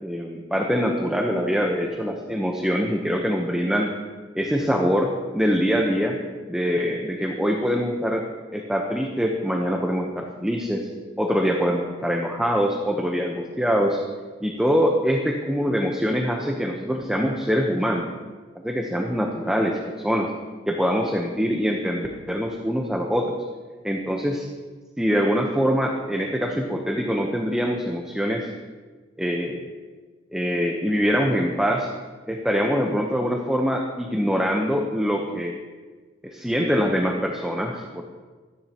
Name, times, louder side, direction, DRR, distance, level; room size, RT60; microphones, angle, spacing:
voice 1, 0.0-3.9 4.3-6.2 6.5-8.3 8.5-10.9 11.2-14.0 14.4-18.1 18.6-20.3 20.7-23.4 23.8-24.5 25.0-28.5 29.2-29.6 30.3-31.9 32.3-35.5 36.2-38.0, equal, 5° right, 1 dB, 1.0 m, -24 dB
24.5 x 10.5 x 3.0 m, 1.4 s
head